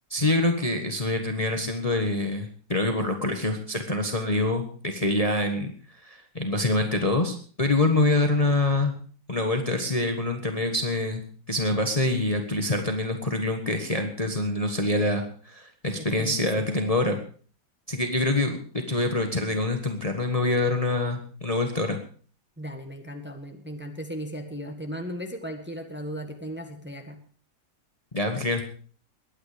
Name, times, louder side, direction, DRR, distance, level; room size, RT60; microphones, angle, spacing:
voice 1, 0.1-5.7 6.0-8.9 9.3-17.2 17.9-22.0 28.1-28.6, left 2 dB, 25° left, 5 dB, 1.4 m, -25 dB
voice 2, 15.9-16.5 22.6-27.2, equal, 5° right, 5 dB, 1.5 m, -36 dB
21.0 x 9.5 x 5.1 m, 0.42 s
omnidirectional pair, 1.8 m